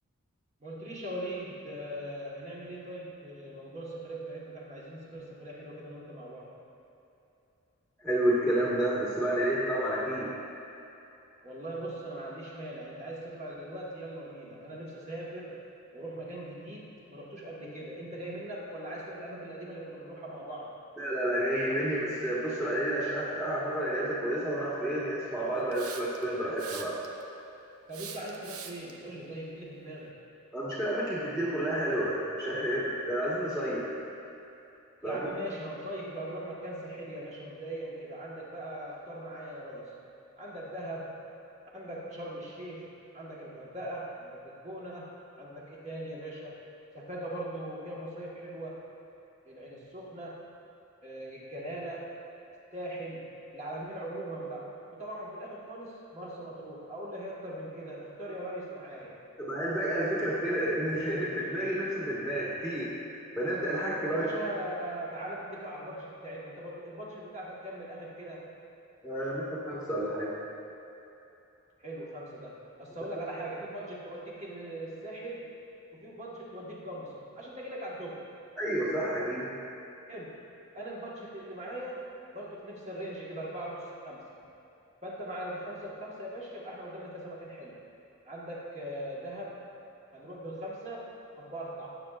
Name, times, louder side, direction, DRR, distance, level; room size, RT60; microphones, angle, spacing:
voice 1, 0.6-6.5 11.4-15.6 15.9-20.7 27.9-30.2 35.0-40.0 40.4-41.2 41.7-46.6 46.9-48.8 49.4-50.4 51.0-52.2 52.7-59.2 64.0-68.5 71.8-75.5 75.9-78.2 80.1-80.5 80.7-82.0 82.3-84.2 85.0-87.8 88.2-89.6 90.1-92.0, right 1 dB, 30° right, -5 dB, 1.4 m, -40 dB
voice 2, 8.0-10.3 21.0-27.0 30.5-33.8 35.0-35.3 59.4-64.3 69.0-70.3 78.6-79.5, right 1 dB, 5° right, -8 dB, 1.4 m, -30 dB
Hiss, 25.7-26.2 26.6-27.2 27.9-28.9, right 7 dB, 80° right, 0.7 m, -43 dB
17.5 x 6.7 x 2.4 m, 3.0 s
head